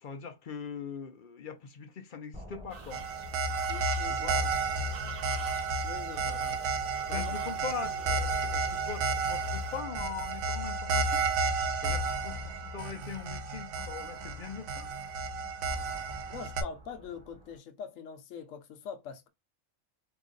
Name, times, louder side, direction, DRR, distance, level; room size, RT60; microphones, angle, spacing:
voice 1, 0.0-3.1 4.1-4.5 7.1-11.2 11.8-14.9, left 7 dB, 55° left, 0.6 m, -41 dB
sound 1, 2.3-17.6, equal, 5° right, 0.9 m, -50 dB
sound 2, 2.7-9.8, right 5 dB, 50° right, 0.9 m, -52 dB
sound 3, 2.9-16.6, right 3 dB, 85° right, 1.0 m, -32 dB
voice 2, 3.7-4.3 5.8-6.7 7.1-7.3 16.3-19.3, left 6 dB, 75° left, 1.0 m, -43 dB
2.9 x 2.5 x 3.7 m
omnidirectional pair, 1.4 m